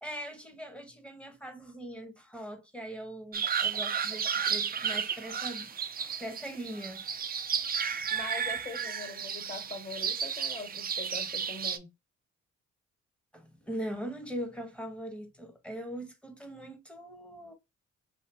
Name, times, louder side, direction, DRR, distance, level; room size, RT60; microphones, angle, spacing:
voice 1, 0.0-7.1 13.3-17.5, right 1 dB, 5° left, 1.0 m, -41 dB
sound 1, 3.3-11.8, right 7 dB, 30° right, 0.4 m, -33 dB
voice 2, 8.1-11.9, left 3 dB, 35° left, 1.6 m, -42 dB
2.8 x 2.5 x 3.2 m
supercardioid pair, 65°, 30 cm